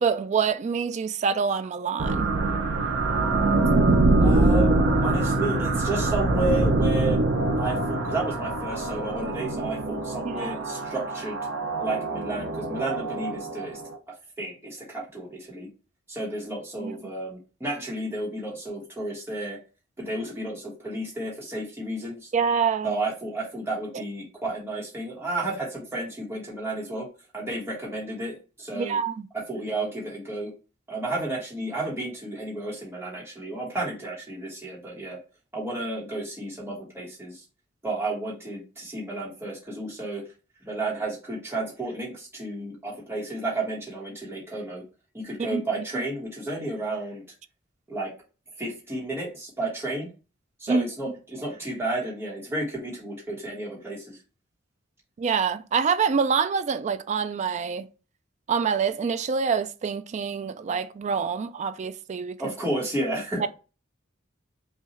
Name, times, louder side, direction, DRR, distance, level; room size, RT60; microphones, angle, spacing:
voice 1, 0.0-2.3 10.2-10.5 16.8-17.0 22.3-23.0 28.7-29.3 45.5-45.6 45.9-46.0 50.7-50.9 55.2-57.9 58.5-62.4 63.4-63.5, right 6 dB, 35° right, 0.3 m, -26 dB
sound 1, 2.0-14.0, right 2 dB, 65° right, 0.7 m, -24 dB
voice 2, 4.2-7.2 7.6-11.4 11.8-13.8 14.4-15.7 16.1-19.6 20.0-22.3 22.8-27.1 27.3-29.0 29.3-30.5 30.9-35.2 35.5-37.4 37.8-40.2 40.7-44.8 45.1-47.2 47.9-48.1 48.6-50.1 50.6-54.2 62.4-63.5, right 2 dB, 10° right, 1.1 m, -32 dB
5.5 x 2.3 x 2.9 m
head